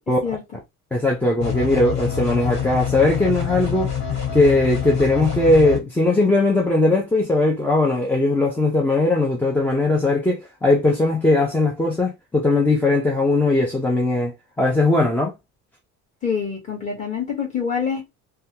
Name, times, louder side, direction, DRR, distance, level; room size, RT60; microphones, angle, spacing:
voice 1, 0.1-0.4 16.2-18.0, left 6 dB, 25° left, 1.5 m, -26 dB
voice 2, 0.9-3.9 4.3-15.3, left 2 dB, 5° left, 0.4 m, -19 dB
sound 1, 1.4-5.8, left 8 dB, 70° left, 1.5 m, -26 dB
3.4 x 2.2 x 2.7 m
cardioid pair, 170°, 29 cm